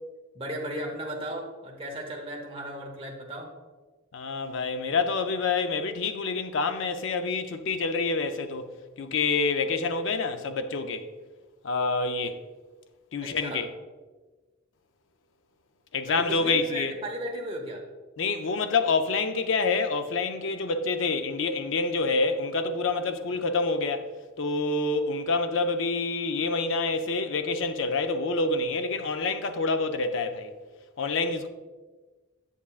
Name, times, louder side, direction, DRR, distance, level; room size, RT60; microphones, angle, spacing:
voice 1, 0.3-3.5 13.2-13.7 16.1-17.8, right 1 dB, 25° right, 0.9 m, -36 dB
voice 2, 4.1-11.1 11.6-12.4 13.1-13.7 15.9-16.9 18.2-24.1 24.4-30.5 31.0-31.5, left 3 dB, 65° left, 0.5 m, -27 dB
7.3 x 6.8 x 2.4 m
head